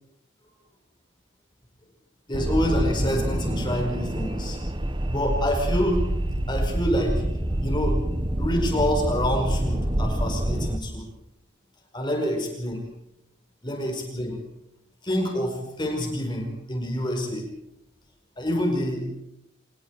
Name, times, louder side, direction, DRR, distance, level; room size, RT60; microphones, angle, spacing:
voice 1, 2.3-4.6 5.1-6.1 6.5-8.0 8.4-11.1 11.9-12.8 13.6-14.4 15.0-17.5 18.4-19.2, equal, 25° left, 2 dB, 4.8 m, -27 dB
sound 1, 2.3-10.8, right 1 dB, 25° right, 1.3 m, -26 dB
26.5 x 20.5 x 4.7 m, 0.78 s
head